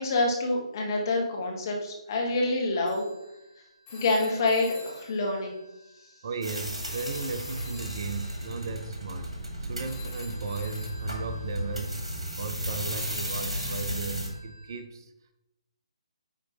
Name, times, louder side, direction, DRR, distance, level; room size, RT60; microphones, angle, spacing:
voice 1, 0.0-3.0 3.9-5.5, left 2 dB, 40° left, 0 dB, 1.4 m, -27 dB
Telephone, 2.9-6.5 6.8-14.8, left 3 dB, 15° left, 1.2 m, -48 dB
voice 2, 6.2-15.1, right 4 dB, 40° right, 11 dB, 0.5 m, -36 dB
sound 1, 6.4-14.3, equal, 75° right, 1.9 m, -35 dB
9.2 x 3.1 x 4.0 m, 0.94 s
figure-of-eight pair, 140°, 3 cm